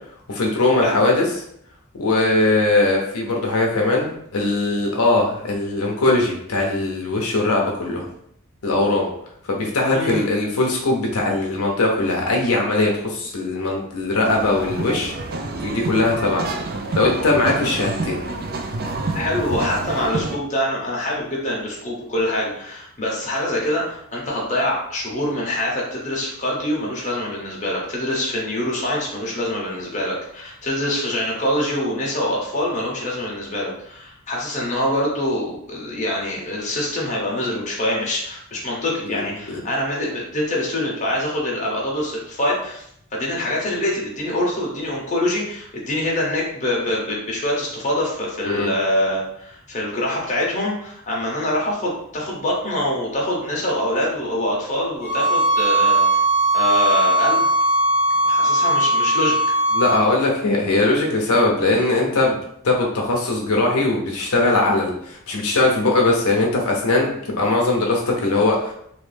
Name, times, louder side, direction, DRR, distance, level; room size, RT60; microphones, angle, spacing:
voice 1, 0.3-1.3 1.9-8.1 8.6-9.1 9.5-15.1 15.6-16.4 17.0-18.2 39.0-39.6 48.5-48.7 59.7-68.7, left 2 dB, 80° left, -1 dB, 0.7 m, -20 dB
voice 2, 9.9-10.2 19.1-42.8 43.1-56.2 56.5-57.5 58.2-59.4, left 1 dB, 35° left, -3 dB, 0.9 m, -24 dB
sound 1, 14.2-20.4, right 3 dB, 45° right, 0.4 m, -28 dB
sound 2, 55.0-60.0, right 1 dB, 10° right, 1.3 m, -18 dB
3.1 x 2.6 x 3.3 m, 0.71 s
head